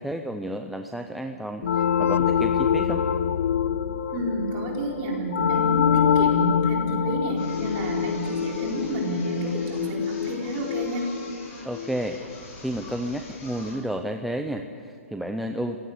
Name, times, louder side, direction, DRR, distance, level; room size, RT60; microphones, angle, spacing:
voice 1, 0.0-3.0 11.6-12.2 12.6-15.8, right 1 dB, ahead, 5 dB, 0.5 m, -31 dB
sound 1, 1.6-12.1, left 8 dB, 65° left, 0.8 m, -25 dB
voice 2, 4.1-11.1, right 1 dB, 25° right, -1 dB, 4.4 m, -30 dB
sound 2, 7.4-13.8, left 2 dB, 25° left, 7.8 m, -44 dB
28.5 x 16.5 x 8.1 m, 2.4 s
hypercardioid pair, 170°, 8 cm